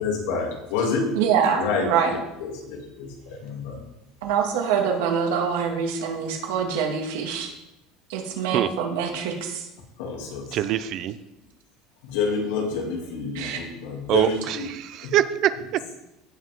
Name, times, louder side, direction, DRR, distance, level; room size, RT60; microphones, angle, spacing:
voice 1, 0.0-1.1 1.6-3.8 10.0-10.6 12.0-14.7, left 4 dB, 80° left, 0 dB, 2.7 m, -28 dB
voice 2, 1.2-2.2 4.2-7.5 8.1-9.7 13.3-13.7, right 7 dB, 85° right, 2 dB, 2.2 m, -25 dB
voice 3, 10.5-11.2 14.1-15.9, right 11 dB, 40° right, 13 dB, 0.5 m, -24 dB
16.0 x 5.9 x 3.7 m, 0.90 s
cardioid pair, 170°, 0 cm